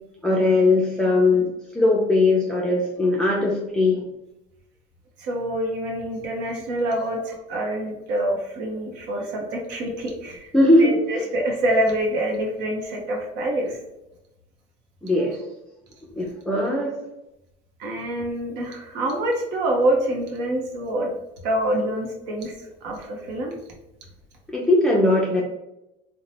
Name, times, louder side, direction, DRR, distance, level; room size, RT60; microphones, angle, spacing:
voice 1, 0.2-4.1 10.5-10.9 15.0-15.4 16.2-17.0 24.5-25.4, left 2 dB, 5° left, -3 dB, 0.5 m, -19 dB
voice 2, 5.2-10.5 10.8-13.8 17.8-21.1 21.4-22.5 22.8-23.5, right 1 dB, 70° right, 0 dB, 0.7 m, -26 dB
2.7 x 2.1 x 3.1 m, 0.89 s
supercardioid pair, 100°, 19 cm